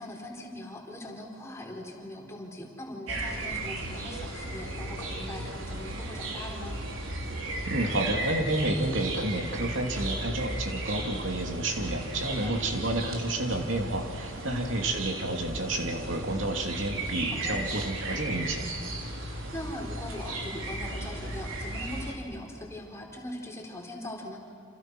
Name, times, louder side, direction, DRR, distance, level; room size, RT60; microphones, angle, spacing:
voice 1, 0.0-6.8 12.2-12.5 14.4-14.6 17.3-17.6 19.2-24.4, left 1 dB, 15° left, 0 dB, 4.2 m, -41 dB
sound 1, 3.1-22.1, right 1 dB, 85° right, 3.7 m, -35 dB
voice 2, 7.7-18.6, right 2 dB, 70° right, 3 dB, 2.9 m, -30 dB
29.0 x 27.5 x 6.2 m, 2.7 s
head